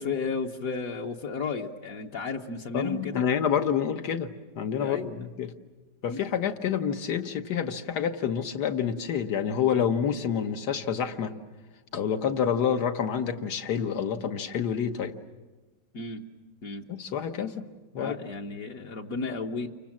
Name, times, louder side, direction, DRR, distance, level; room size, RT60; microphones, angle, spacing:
voice 1, 0.0-3.3 4.8-5.1 6.1-6.2 15.9-16.2 16.6-16.8 18.0-19.7, left 4 dB, 60° left, 1 dB, 1.4 m, -33 dB
voice 2, 2.7-5.5 6.0-11.3 11.9-15.1 16.9-17.6 17.9-18.1, left 8 dB, 75° left, 7 dB, 1.7 m, -28 dB
29.5 x 24.5 x 7.3 m, 1.2 s
omnidirectional pair, 1.8 m